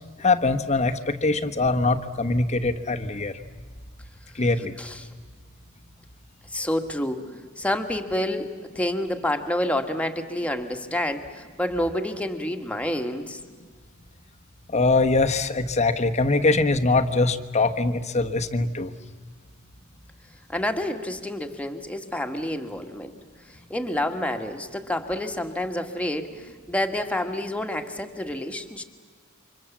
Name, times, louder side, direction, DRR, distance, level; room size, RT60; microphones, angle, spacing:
voice 1, 0.2-3.4 4.3-4.7 14.7-18.9, left 3 dB, 35° left, 7 dB, 1.2 m, -22 dB
voice 2, 4.8-5.1 6.5-7.2 7.6-13.4 20.5-23.1 23.7-28.8, left 1 dB, 5° left, 5 dB, 1.7 m, -28 dB
29.0 x 25.5 x 7.3 m, 1.5 s
head